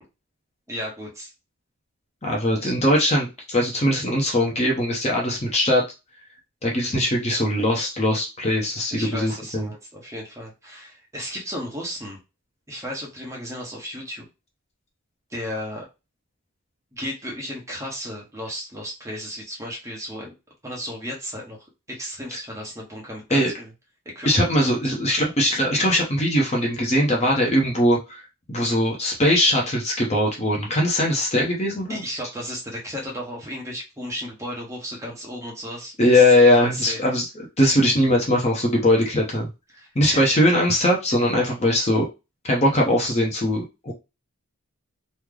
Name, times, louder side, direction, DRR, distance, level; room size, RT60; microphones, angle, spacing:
voice 1, 0.7-1.3 2.6-2.7 8.9-12.2 12.7-14.2 15.3-15.8 16.9-20.3 20.6-21.6 21.9-23.7 24.1-24.9 31.9-36.2 36.5-37.0 39.7-40.3, equal, 15° right, -3 dB, 1.1 m, -34 dB
voice 2, 2.2-5.8 6.6-9.7 23.3-23.5 24.3-28.2 28.5-32.0 36.0-39.5 39.9-42.1 42.4-43.9, left 1 dB, 30° left, -1 dB, 0.8 m, -20 dB
3.2 x 2.2 x 3.7 m, 0.26 s
head